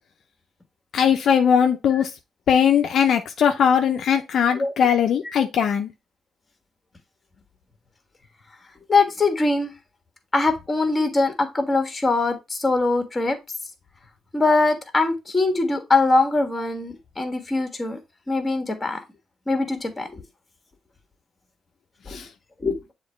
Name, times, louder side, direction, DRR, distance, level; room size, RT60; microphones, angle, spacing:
voice 1, 0.9-2.1 2.5-5.9 22.1-22.3, left 8 dB, 65° left, 0.6 m, -19 dB
voice 2, 8.9-9.7 10.3-13.4 14.3-18.0 18.3-19.0 19.5-20.2 22.1-22.2 22.6-22.9, left 3 dB, 20° left, 1.6 m, -22 dB
7.1 x 3.1 x 4.3 m
cardioid pair, 90°, 0 cm